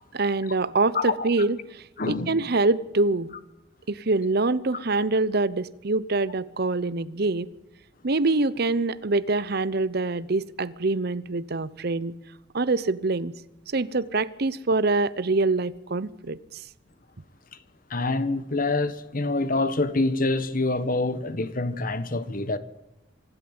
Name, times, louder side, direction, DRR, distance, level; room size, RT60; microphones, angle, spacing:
voice 1, 0.1-3.4 3.9-7.5 8.0-12.1 12.5-13.3 13.7-16.4, right 3 dB, 55° right, 0.8 m, -25 dB
voice 2, 0.9-1.3 2.0-2.4 17.9-22.6, left 2 dB, 45° left, 1.4 m, -26 dB
26.0 x 12.0 x 8.9 m
head